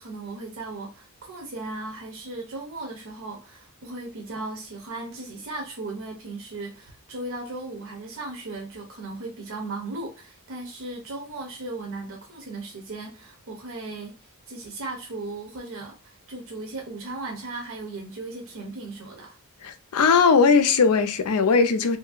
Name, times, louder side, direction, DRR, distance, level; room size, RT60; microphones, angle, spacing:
voice 1, 0.0-14.2 14.5-19.4, right 2 dB, 60° right, 0.7 m, -36 dB
voice 2, 19.6-22.0, left 5 dB, 80° left, 0.5 m, -19 dB
2.8 x 2.6 x 2.4 m
head